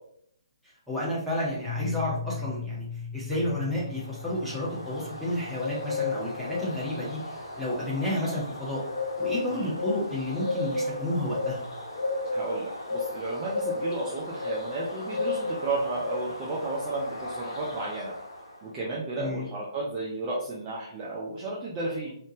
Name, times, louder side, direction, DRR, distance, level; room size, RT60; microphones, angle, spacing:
voice 1, 0.9-2.9 3.1-8.8 9.2-11.6 19.1-19.5, left 1 dB, ahead, -9 dB, 1.4 m, -31 dB
Piano, 1.6-7.3, left 5 dB, 20° left, 0.8 m, -39 dB
Bird, 3.9-18.6, left 3 dB, 60° left, 1.2 m, -34 dB
voice 2, 12.3-18.1 18.6-22.2, right 2 dB, 20° right, -6 dB, 0.8 m, -33 dB
4.3 x 3.3 x 3.0 m, 0.68 s
figure-of-eight pair, 135°, 3 cm